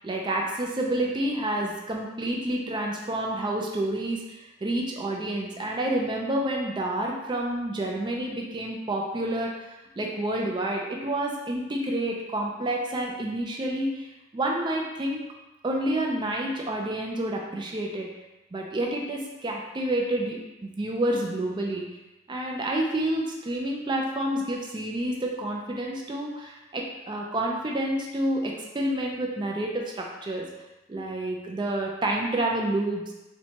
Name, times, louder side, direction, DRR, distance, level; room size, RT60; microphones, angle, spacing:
voice 1, 0.0-9.7 10.0-14.1 14.3-15.2 15.6-18.1 18.5-21.9 22.3-30.5 30.9-33.0, right 1 dB, 25° right, 0 dB, 0.3 m, -29 dB
4.2 x 2.2 x 2.8 m, 1.0 s
head